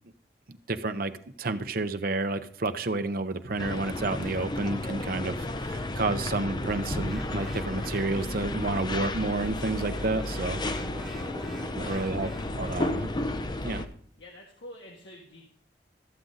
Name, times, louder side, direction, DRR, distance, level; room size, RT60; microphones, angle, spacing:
voice 1, 0.5-1.1 1.4-10.6 11.7-12.3 12.6-13.1 13.6-13.9, right 2 dB, 55° right, 9 dB, 0.7 m, -30 dB
sound 1, 3.6-13.4, equal, 60° left, 2.1 m, -50 dB
sound 2, 3.6-13.9, left 1 dB, 25° left, 0.6 m, -33 dB
sound 3, 7.0-8.6 9.4-13.0, equal, ahead, 1.0 m, -46 dB
voice 2, 14.2-15.5, left 1 dB, 80° left, 0 dB, 1.5 m, -49 dB
13.0 x 7.6 x 3.9 m, 0.64 s
head